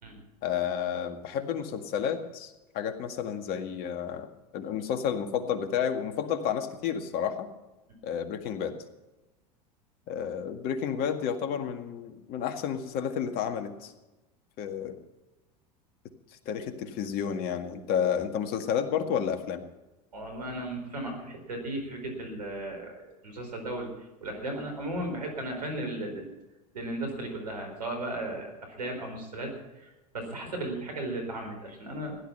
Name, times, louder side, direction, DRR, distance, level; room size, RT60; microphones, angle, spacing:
voice 1, 0.4-4.3 4.5-7.5 8.0-8.7 10.1-13.9 14.6-15.0 16.5-19.7, left 8 dB, 50° left, 7 dB, 1.9 m, -31 dB
voice 2, 20.1-23.9 24.2-26.3 26.7-32.2, right 1 dB, 85° right, 4 dB, 4.5 m, -36 dB
16.0 x 11.0 x 5.7 m, 1.0 s
hypercardioid pair, 85°, 20 cm